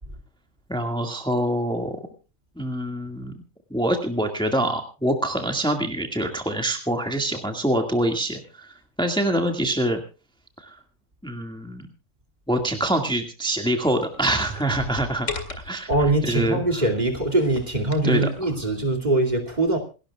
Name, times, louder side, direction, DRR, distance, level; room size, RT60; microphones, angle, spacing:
voice 1, 0.7-2.0 2.6-3.3 3.7-8.7 9.0-10.0 10.6-10.8 11.2-11.9 12.5-16.9 18.0-18.5, right 1 dB, 5° left, 4 dB, 1.9 m, -25 dB
sound 1, 14.0-16.5 17.1-18.3, left 3 dB, 70° left, 2.5 m, -37 dB
voice 2, 15.9-19.8, right 2 dB, 35° right, 3 dB, 2.8 m, -22 dB
28.0 x 12.0 x 2.4 m, 0.33 s
omnidirectional pair, 1.3 m